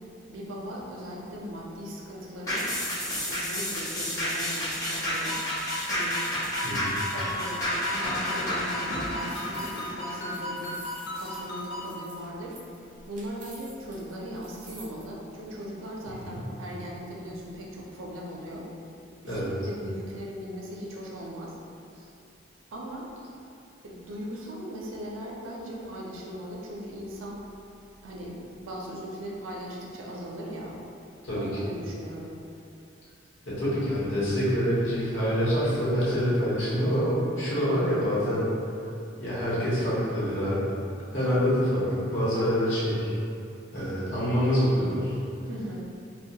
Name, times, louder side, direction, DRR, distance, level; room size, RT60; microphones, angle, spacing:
voice 1, 0.3-2.7 3.0-5.4 5.9-6.2 7.1-12.6 13.1-18.7 19.2-21.6 21.9-22.1 22.7-23.1 23.8-27.4 28.0-30.8 31.4-32.3 45.5-45.9, equal, 90° right, -3 dB, 0.4 m, -39 dB
sound 1, 2.5-11.2 11.6-11.7, equal, 15° left, 0.4 m, -31 dB
Ringtone, 5.1-11.9, left 1 dB, 65° left, 0.6 m, -36 dB
voice 2, 6.6-6.9 16.2-16.4 19.2-19.5 31.2-31.5 33.5-38.5 39.2-40.7 41.1-43.1 43.7-45.2, equal, 85° left, -10 dB, 0.9 m, -26 dB
sound 2, 8.9-15.0, right 2 dB, 40° right, 0.5 m, -49 dB
2.2 x 2.2 x 2.7 m, 2.6 s
head